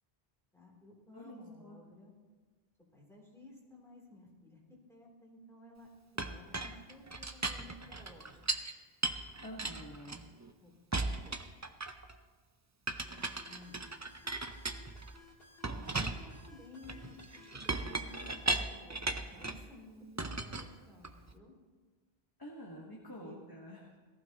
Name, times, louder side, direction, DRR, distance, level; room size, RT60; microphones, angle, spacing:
voice 1, 0.5-2.1 2.9-4.6 4.9-5.9 6.3-8.5 10.6-11.4 13.4-13.8 15.7-17.2 17.5-21.5 23.1-23.4, left 2 dB, 5° left, -3 dB, 3.3 m, -55 dB
voice 2, 1.1-1.8 9.4-10.3 22.4-24.0, equal, 20° left, -2 dB, 1.5 m, -48 dB
Chink clink, 6.2-8.7 9.0-10.5 10.9-12.1 12.9-15.2 15.6-19.7 20.2-21.3, right 2 dB, 25° right, 0.4 m, -37 dB
sound 1, 13.2-18.5, left 3 dB, 70° left, 2.1 m, -59 dB
18.5 x 14.5 x 3.0 m, 1.4 s
omnidirectional pair, 1.1 m